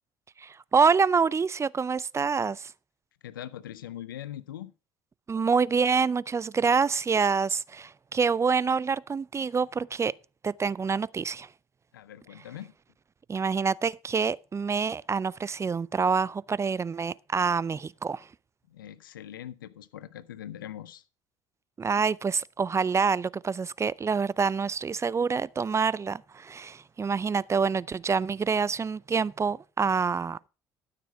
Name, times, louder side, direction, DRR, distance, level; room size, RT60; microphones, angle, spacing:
voice 1, 0.4-2.7 5.3-10.1 10.4-11.5 13.3-18.3 21.8-30.5, right 5 dB, 25° right, 0.4 m, -26 dB
voice 2, 3.2-4.7 11.9-12.7 18.7-21.0, left 11 dB, 90° left, 0.6 m, -41 dB
12.5 x 6.8 x 4.9 m
hypercardioid pair, 60°, 11 cm